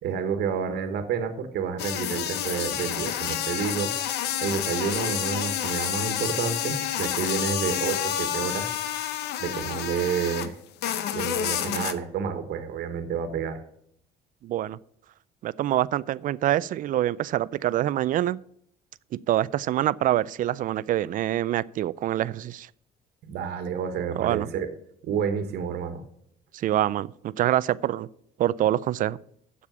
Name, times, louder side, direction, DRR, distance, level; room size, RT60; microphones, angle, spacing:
voice 1, 0.0-3.9 4.4-8.7 9.4-10.6 11.1-13.6 23.3-24.7 25.0-26.0, right 7 dB, 70° right, 8 dB, 1.4 m, -29 dB
sound 1, 1.8-10.5 10.8-11.9, left 11 dB, 80° left, 0.9 m, -29 dB
voice 2, 14.4-14.8 15.4-18.4 19.3-22.7 24.2-24.5 26.5-28.1 28.4-29.2, right 13 dB, 55° right, 19 dB, 0.4 m, -25 dB
7.5 x 6.9 x 8.1 m, 0.70 s
cardioid pair, 110°, 17 cm